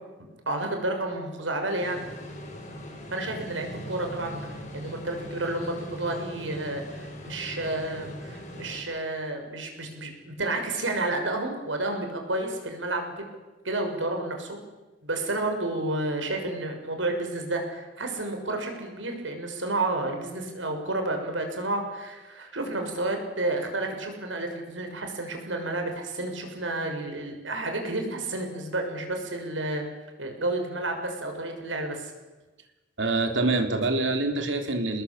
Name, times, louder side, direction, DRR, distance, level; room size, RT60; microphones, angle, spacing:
voice 1, 0.5-2.0 3.1-13.3 13.6-14.6 15.0-29.9 30.2-32.1, right 2 dB, 85° right, 4 dB, 6.5 m, -31 dB
sound 1, 1.8-8.8, equal, 40° left, 7.2 m, -40 dB
voice 2, 33.0-35.0, right 2 dB, 70° right, 5 dB, 3.8 m, -25 dB
27.5 x 21.0 x 8.7 m, 1.2 s
head